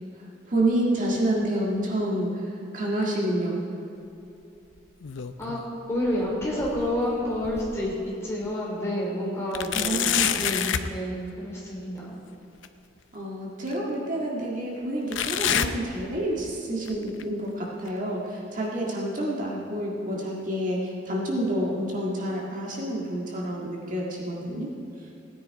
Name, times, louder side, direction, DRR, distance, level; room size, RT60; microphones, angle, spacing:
voice 1, 0.5-3.6 6.2-6.3 9.7-10.7 13.1-24.7, right 1 dB, 45° right, -3 dB, 1.8 m, -28 dB
sound 1, 4.8-5.7 6.1-8.0 8.5-8.6 9.5-10.9 12.6-12.7 13.7-13.8 15.1-16.5 16.9-17.2 17.9-18.0 18.9-19.0, left 9 dB, 85° left, 0.6 m, -29 dB
voice 2, 5.4-10.0 10.8-12.2, left 1 dB, 15° left, -5 dB, 3.3 m, -29 dB
17.5 x 9.9 x 4.7 m, 2.8 s
head